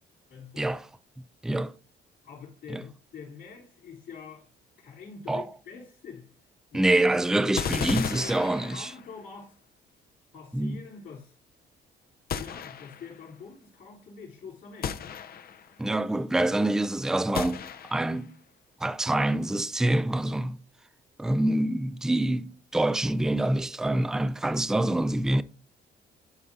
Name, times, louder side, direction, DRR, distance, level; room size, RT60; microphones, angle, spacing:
voice 1, 0.3-0.7 2.2-6.3 6.7-7.0 7.4-9.5 10.3-11.3 12.3-15.1, left 5 dB, 90° left, 3.0 m, -45 dB
voice 2, 1.4-1.7 2.7-2.8 5.3-5.4 6.7-8.9 10.5-10.8 15.8-17.6 17.9-18.4 18.8-20.6 21.2-25.4, right 1 dB, 5° right, 0.3 m, -26 dB
sound 1, 7.6-9.2 12.3-13.2 14.8-15.7 17.3-18.2, left 7 dB, 50° left, 0.6 m, -34 dB
11.0 x 4.3 x 2.6 m
cardioid pair, 90°, 20 cm